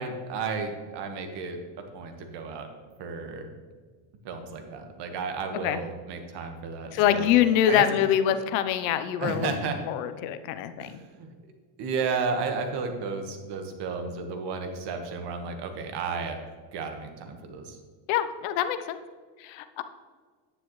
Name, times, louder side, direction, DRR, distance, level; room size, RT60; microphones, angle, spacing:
voice 1, 0.0-1.6 1.9-2.7 3.0-3.6 4.2-7.3 7.7-8.0 9.2-9.8 10.8-11.3 11.8-16.4 16.7-17.8, right 4 dB, 55° right, 5 dB, 1.6 m, -33 dB
voice 2, 6.9-9.5 9.9-11.0 18.1-19.0 19.4-19.8, left 10 dB, 80° left, 11 dB, 0.9 m, -25 dB
9.9 x 9.9 x 3.2 m, 1.5 s
cardioid pair, 125°, 50 cm